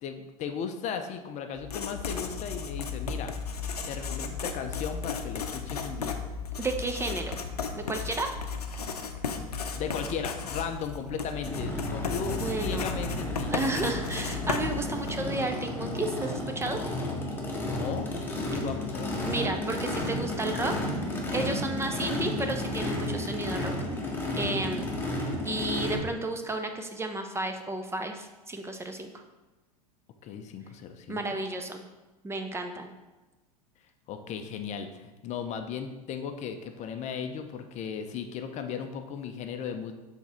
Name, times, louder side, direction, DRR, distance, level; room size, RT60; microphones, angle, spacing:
voice 1, 0.0-3.3 3.9-6.2 9.7-13.5 17.6-18.1 18.3-19.5 30.2-31.4 34.1-39.9, left 7 dB, 35° left, 7 dB, 0.6 m, -36 dB
Writing, 1.6-15.4, left 5 dB, 85° left, 0.6 m, -35 dB
voice 2, 6.6-7.4 7.7-8.3 12.3-12.9 13.5-16.8 19.2-20.7 21.3-23.7 24.3-24.8 25.4-29.1 31.1-31.8 32.2-32.9, right 2 dB, 15° right, 5 dB, 0.6 m, -32 dB
Race car auto racing / Idling / Accelerating revving vroom, 11.5-26.0, left 1 dB, 10° left, 1.3 m, -32 dB
7.0 x 3.6 x 4.3 m, 1.1 s
hypercardioid pair, 90°, 19 cm